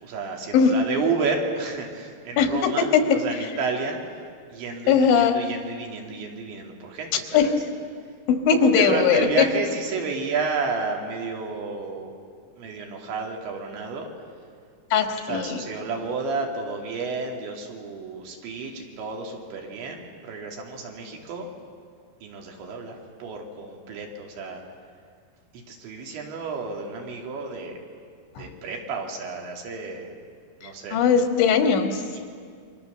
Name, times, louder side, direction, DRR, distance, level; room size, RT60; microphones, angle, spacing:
voice 1, 0.0-4.0 4.5-7.5 8.5-12.2 12.6-14.1 15.3-21.5 22.2-24.6 25.7-27.7 28.4-30.2 30.6-31.0 32.1-32.2, right 4 dB, 80° right, 1 dB, 5.0 m, -31 dB
voice 2, 2.4-3.2 4.9-5.4 7.1-7.6 8.3-9.5 14.9-15.6 28.4-28.5 30.9-32.0, left 6 dB, 90° left, 5 dB, 4.1 m, -20 dB
28.5 x 24.5 x 7.0 m, 2.1 s
omnidirectional pair, 5.1 m